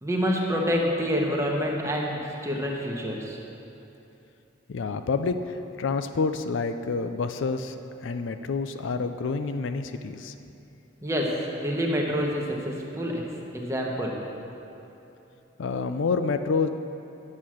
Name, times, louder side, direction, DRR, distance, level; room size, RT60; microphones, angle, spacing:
voice 1, 0.0-3.4 11.0-13.2 13.5-14.2, equal, 15° right, -1 dB, 1.0 m, -27 dB
voice 2, 4.7-7.8 8.0-10.3 15.6-16.7, left 4 dB, 75° left, 9 dB, 0.4 m, -28 dB
8.6 x 7.5 x 6.3 m, 2.9 s
head